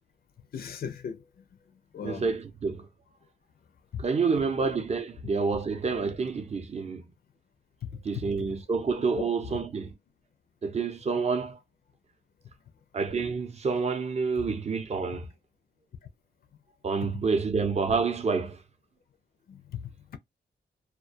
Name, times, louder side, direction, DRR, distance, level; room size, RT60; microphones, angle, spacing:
voice 1, 0.5-1.2 1.9-2.3 3.9-4.0 8.1-8.2 9.2-9.6 14.5-14.6 19.5-19.6, left 7 dB, 55° left, 0.4 m, -36 dB
voice 2, 2.0-2.9 4.0-7.0 8.0-9.9 10.6-11.6 12.9-15.3 16.8-18.6, right 4 dB, 35° right, 0.6 m, -28 dB
2.2 x 2.2 x 2.5 m
wide cardioid pair, 115°, 19 cm